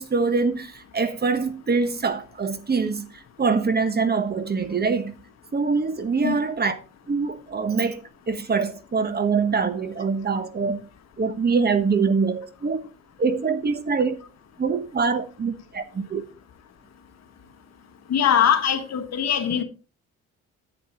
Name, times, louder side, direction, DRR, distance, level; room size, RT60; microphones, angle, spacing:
voice 1, 0.0-5.1 5.5-6.8 7.1-8.0 8.3-10.9 11.2-12.8 13.2-14.1 14.6-16.2, right 4 dB, 30° right, 1.3 m, -24 dB
voice 2, 18.1-19.6, left 8 dB, 60° left, 1.4 m, -21 dB
10.5 x 8.4 x 3.0 m
cardioid pair, 90°, 30 cm